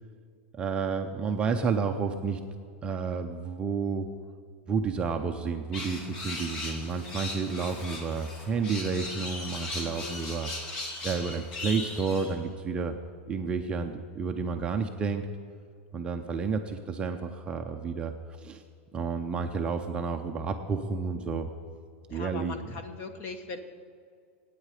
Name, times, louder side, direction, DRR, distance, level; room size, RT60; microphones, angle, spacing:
voice 1, 0.5-2.4 2.8-4.1 4.7-10.5 11.0-12.9 13.3-15.3 15.9-18.1 18.4-18.6 18.9-21.5 22.1-22.6, right 5 dB, 15° right, 4 dB, 0.6 m, -30 dB
sound 1, 5.7-12.3, left 2 dB, 45° left, 2.8 m, -38 dB
voice 2, 9.8-10.2 22.1-23.6, left 4 dB, 30° left, 8 dB, 1.2 m, -40 dB
24.5 x 9.2 x 4.9 m, 2.2 s
supercardioid pair, 165°, 7 cm